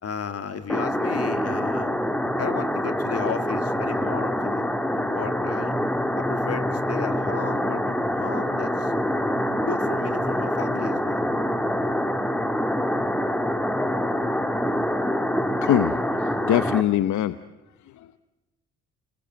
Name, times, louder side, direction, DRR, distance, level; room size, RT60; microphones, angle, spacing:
voice 1, 0.0-2.0 2.4-4.6 5.0-5.7 6.1-8.9 9.6-11.2, left 7 dB, 55° left, 9 dB, 2.3 m, -34 dB
sound 1, 0.7-16.8, equal, 5° left, 1.9 m, -25 dB
voice 2, 15.6-17.4 17.9-18.1, left 12 dB, 75° left, 13 dB, 0.9 m, -23 dB
29.0 x 20.5 x 7.8 m, 1.1 s
cardioid pair, 90°, 30 cm